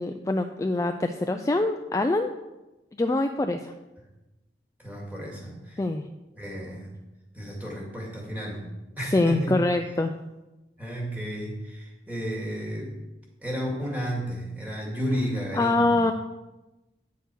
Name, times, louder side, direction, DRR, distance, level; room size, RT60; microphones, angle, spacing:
voice 1, 0.0-2.3 3.0-3.7 5.8-6.0 9.1-10.1 15.5-16.1, left 2 dB, 20° left, 6 dB, 0.3 m, -24 dB
voice 2, 4.8-5.8 6.4-6.9 7.3-8.7 9.0-9.6 10.8-12.9 13.4-15.9, equal, 10° right, -3 dB, 2.2 m, -32 dB
9.3 x 6.7 x 4.6 m, 1.0 s
head